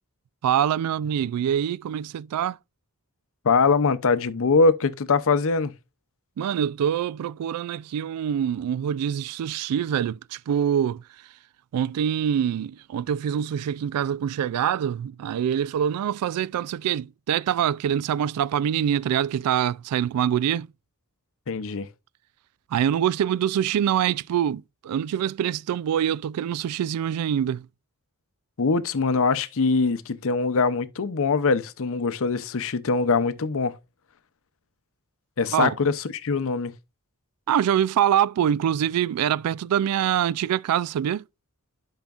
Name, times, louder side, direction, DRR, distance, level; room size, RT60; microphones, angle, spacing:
voice 1, 0.4-2.6 6.4-11.0 11.7-20.7 22.7-27.7 35.5-35.7 37.5-41.2, right 9 dB, 90° right, 0.3 m, -25 dB
voice 2, 3.4-5.7 21.5-21.9 28.6-33.8 35.4-36.7, left 4 dB, 65° left, 0.6 m, -22 dB
10.5 x 5.7 x 2.4 m
head